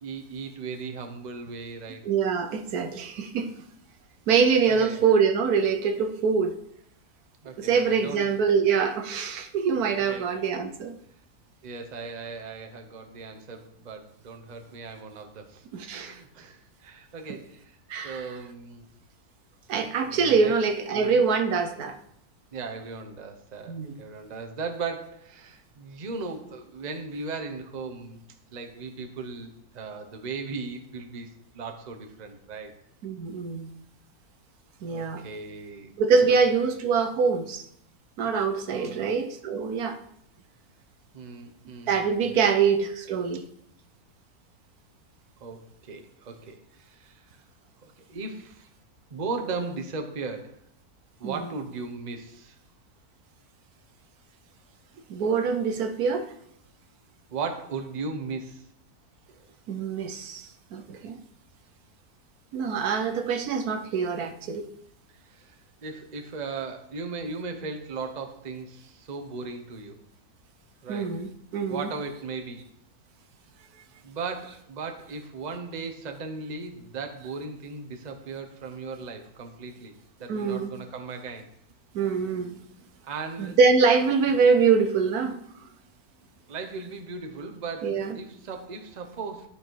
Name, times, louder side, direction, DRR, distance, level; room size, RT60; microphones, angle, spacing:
voice 1, 0.0-2.0 4.7-5.0 7.4-8.3 10.1-10.3 11.6-17.8 18.0-18.9 20.0-20.6 20.9-21.2 22.5-28.2 28.5-31.3 31.5-32.7 34.8-35.9 36.3-36.4 38.7-39.1 41.1-42.4 45.4-47.2 47.8-48.7 49.1-50.6 51.2-52.6 57.3-58.7 65.2-65.6 65.8-70.0 70.8-71.2 71.7-72.6 74.0-79.9 80.2-81.5 83.0-83.6 86.5-89.5, right 4 dB, 35° right, 5 dB, 0.9 m, -37 dB
voice 2, 2.0-3.5 4.3-6.6 7.6-10.9 15.7-16.2 17.9-18.3 19.7-22.0 23.7-23.9 33.0-33.7 34.8-35.2 36.0-37.6 38.2-40.0 41.9-43.5 51.2-51.4 55.1-56.3 59.7-61.2 62.5-64.7 70.9-71.9 80.3-80.7 81.9-82.6 83.4-85.5 87.8-88.2, right 5 dB, 75° right, 8 dB, 1.3 m, -24 dB
11.5 x 5.0 x 4.6 m, 0.70 s
omnidirectional pair, 1.6 m